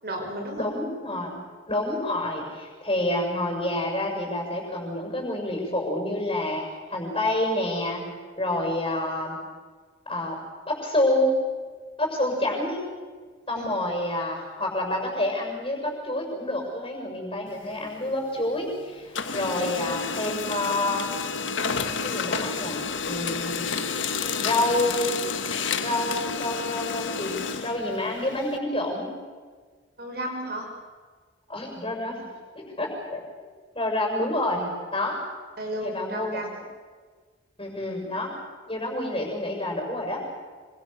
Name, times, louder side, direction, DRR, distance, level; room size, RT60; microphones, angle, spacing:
voice 1, 0.0-0.7 13.5-13.7 30.0-30.7 35.6-36.5, right 1 dB, 50° right, 2 dB, 5.2 m, -33 dB
voice 2, 0.6-1.4 1.7-6.6 6.9-8.1 8.4-9.4 10.1-10.4 10.6-11.4 12.0-12.8 13.5-21.1 22.0-23.6 24.4-25.2 25.8-29.1 31.5-32.3 32.5-33.2 33.7-35.2 35.8-36.4 37.6-38.3 38.7-40.2, left 1 dB, 25° left, 0 dB, 6.7 m, -28 dB
Printer, 17.5-18.7 19.0-28.6, left 5 dB, 75° left, 1.6 m, -30 dB
26.5 x 25.0 x 6.8 m, 1.5 s
head